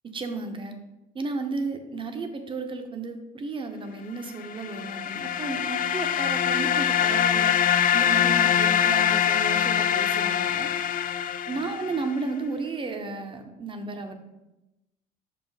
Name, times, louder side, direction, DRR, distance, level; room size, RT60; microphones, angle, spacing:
voice 1, 0.1-0.8 1.1-7.5 7.9-10.7 11.5-14.1, right 3 dB, 30° right, 6 dB, 0.8 m, -33 dB
sound 1, 4.4-12.1, left 9 dB, 55° left, 0.4 m, -24 dB
5.7 x 5.0 x 4.0 m, 0.96 s
cardioid pair, 110°, 17 cm